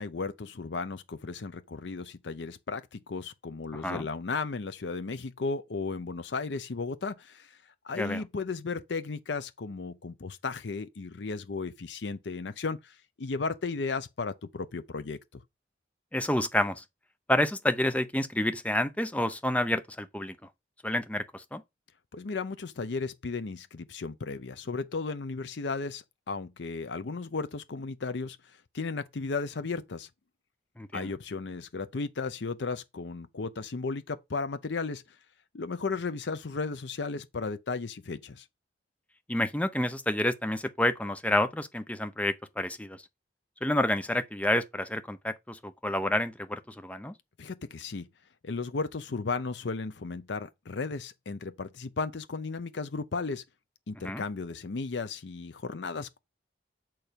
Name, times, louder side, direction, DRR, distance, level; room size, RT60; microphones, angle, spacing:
voice 1, 0.0-7.6 7.8-15.4 22.1-28.4 28.7-30.1 30.9-35.0 35.5-38.4 47.4-48.1 48.4-53.4 53.9-56.2, left 4 dB, 75° left, 0.6 m, -35 dB
voice 2, 3.7-4.1 8.0-8.2 16.1-16.8 17.3-20.4 20.8-21.6 30.8-31.1 39.3-43.0 43.6-47.1 54.0-54.2, left 1 dB, 10° left, 0.5 m, -29 dB
7.6 x 4.5 x 5.1 m
head